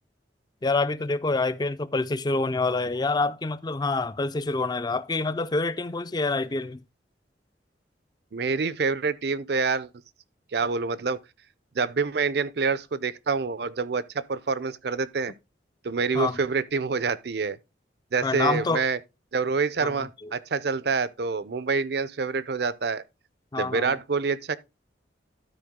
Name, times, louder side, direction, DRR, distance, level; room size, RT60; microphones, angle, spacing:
voice 1, 0.6-6.8 16.1-16.4 18.2-18.8 19.8-20.3 23.5-24.0, left 3 dB, 25° left, 0.4 m, -27 dB
voice 2, 8.3-9.9 10.5-11.2 11.7-15.3 15.8-17.6 18.1-19.0 19.3-23.0 23.6-24.6, right 4 dB, 60° right, 0.5 m, -27 dB
12.5 x 4.6 x 3.6 m
head